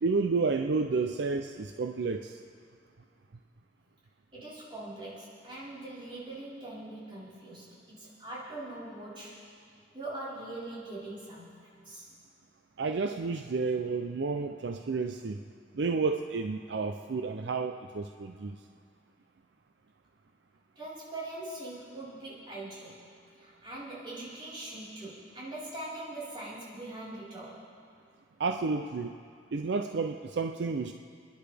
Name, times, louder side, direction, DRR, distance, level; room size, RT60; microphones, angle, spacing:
voice 1, 0.0-2.4 12.8-15.4 15.7-18.6 28.4-29.1 29.5-30.9, right 4 dB, 65° right, 6 dB, 0.5 m, -31 dB
voice 2, 4.3-9.4 9.9-12.1 20.8-23.0 23.4-27.6, right 2 dB, 25° right, -10 dB, 4.4 m, -42 dB
28.0 x 10.5 x 3.4 m, 2.3 s
head